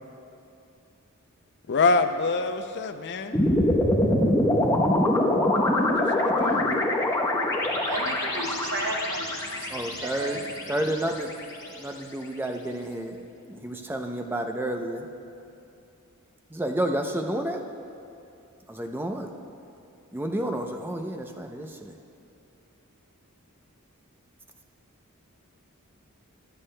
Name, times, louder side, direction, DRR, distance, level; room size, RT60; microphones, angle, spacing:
voice 1, 1.7-3.4 5.8-6.8, left 3 dB, 50° left, 8 dB, 0.5 m, -26 dB
sound 1, 3.3-11.6, left 1 dB, 15° left, 0.9 m, -24 dB
voice 2, 7.6-10.4, right 2 dB, 55° right, 0 dB, 1.2 m, -34 dB
voice 3, 9.7-10.4 10.7-11.3 11.8-15.1 16.5-17.6 18.7-19.3 20.1-21.9, right 1 dB, 10° right, 4 dB, 0.5 m, -30 dB
22.5 x 8.3 x 2.2 m, 2.6 s
head